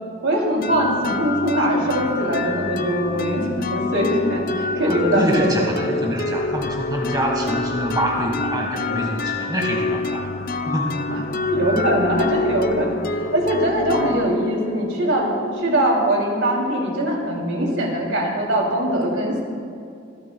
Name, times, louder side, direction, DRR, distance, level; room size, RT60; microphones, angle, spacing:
voice 1, 0.2-6.0 11.1-11.2 11.5-19.4, right 1 dB, 85° right, -1 dB, 2.8 m, -22 dB
sound 1, 0.6-16.2, left 3 dB, 50° left, 0.5 m, -27 dB
voice 2, 4.8-10.3 10.6-11.1, right 1 dB, 20° right, 0 dB, 1.5 m, -26 dB
26.0 x 12.0 x 2.3 m, 2.4 s
head